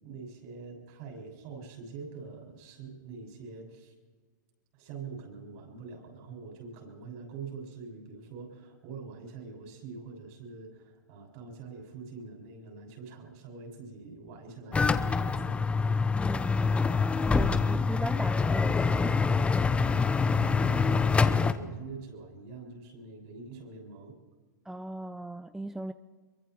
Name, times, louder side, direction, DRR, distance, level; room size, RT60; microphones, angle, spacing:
voice 1, 0.0-3.9 4.7-15.6 20.4-24.2, right 4 dB, 50° right, 2 dB, 6.8 m, -44 dB
sound 1, 14.7-21.5, left 4 dB, 10° left, 0.9 m, -25 dB
voice 2, 16.1-19.2 24.7-25.9, right 2 dB, 5° right, 12 dB, 0.5 m, -38 dB
24.0 x 23.0 x 4.7 m, 1.4 s
hypercardioid pair, 135°, 10 cm